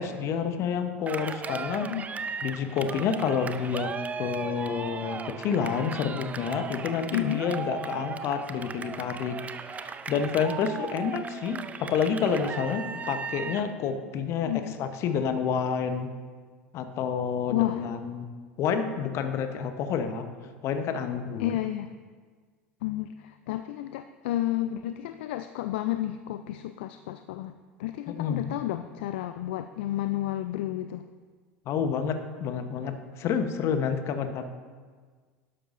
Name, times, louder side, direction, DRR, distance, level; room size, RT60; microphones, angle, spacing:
voice 1, 0.0-1.9 2.4-3.9 4.2-9.4 9.7-16.1 16.7-18.3 18.6-20.3 20.6-21.5 28.1-28.4 31.7-34.5, left 6 dB, 45° left, 8 dB, 1.0 m, -29 dB
Cheering, 1.1-13.7, right 5 dB, 20° right, 0.5 m, -37 dB
voice 2, 14.4-14.7 17.5-17.8 21.4-21.9 22.8-27.5 27.8-31.1, left 14 dB, 60° left, 10 dB, 0.4 m, -31 dB
12.0 x 11.5 x 2.6 m, 1.5 s
figure-of-eight pair, 75°, 7 cm